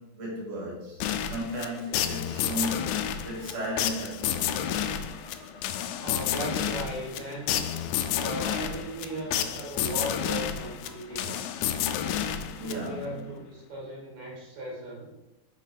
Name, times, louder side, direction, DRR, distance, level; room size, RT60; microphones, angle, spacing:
voice 1, 0.0-4.6 12.6-13.2, equal, 25° right, -5 dB, 1.9 m, -35 dB
sound 1, 1.0-13.1, left 10 dB, 80° left, 2.2 m, -30 dB
sound 2, 3.4-6.7 7.0-12.4, left 1 dB, 30° left, 2.3 m, -53 dB
voice 2, 6.0-7.6 8.1-11.6 12.5-15.1, right 1 dB, 80° right, -3 dB, 3.9 m, -37 dB
6.3 x 5.7 x 4.5 m, 0.95 s
omnidirectional pair, 4.3 m